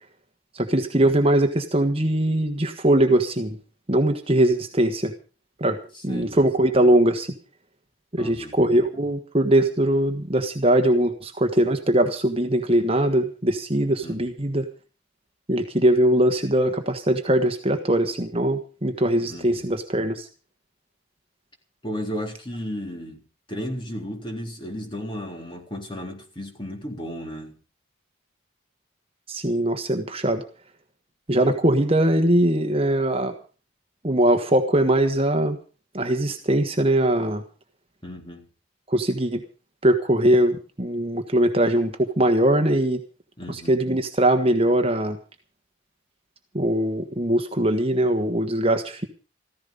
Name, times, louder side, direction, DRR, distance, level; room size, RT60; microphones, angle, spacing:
voice 1, 0.5-3.6 3.9-5.1 5.6-5.8 6.0-7.3 8.1-14.7 15.5-20.3 29.3-30.4 31.3-33.3 34.0-35.6 35.9-37.4 38.9-39.4 39.8-43.0 43.5-45.2 46.5-49.1, right 1 dB, 30° right, 6 dB, 1.4 m, -21 dB
voice 2, 5.9-6.5 8.2-8.6 14.0-14.3 19.3-19.7 21.8-27.5 38.0-38.5 43.4-43.8, equal, 25° left, 2 dB, 3.8 m, -34 dB
15.0 x 15.0 x 5.4 m, 0.38 s
head